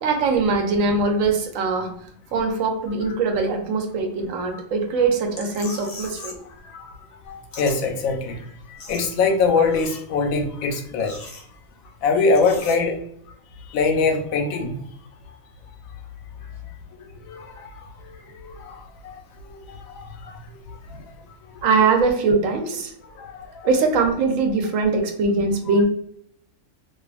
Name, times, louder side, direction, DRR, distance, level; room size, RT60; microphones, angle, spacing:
voice 1, 0.0-2.0 2.3-6.4 20.9-21.0 21.6-22.9 23.6-25.9, right 4 dB, 75° right, 4 dB, 1.0 m, -22 dB
sound 1, 5.3-6.5 6.8-7.8 8.1-8.2 8.5-9.4 9.6-10.4 10.8-11.9 12.3-12.8, left 3 dB, 50° left, 0.5 m, -40 dB
voice 2, 7.3-8.4 8.9-11.1 12.0-13.0 13.7-14.7 17.3-17.7 18.4-19.2 19.7-20.3 23.2-23.5, left 4 dB, 85° left, 3 dB, 1.0 m, -23 dB
2.4 x 2.4 x 2.4 m, 0.67 s
omnidirectional pair, 1.4 m